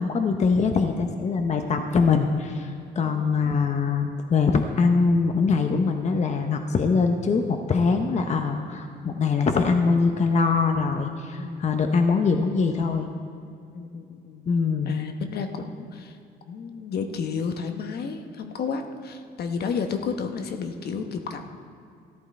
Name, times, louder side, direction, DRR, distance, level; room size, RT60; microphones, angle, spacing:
voice 1, 0.0-13.1 14.5-15.0, left 4 dB, 40° left, 5 dB, 0.8 m, -23 dB
voice 2, 3.0-3.4 11.4-11.6 13.7-14.5 14.9-16.2 16.5-21.4, left 5 dB, 65° left, 5 dB, 1.0 m, -32 dB
14.0 x 11.0 x 4.3 m, 2.4 s
cardioid pair, 105°, 18 cm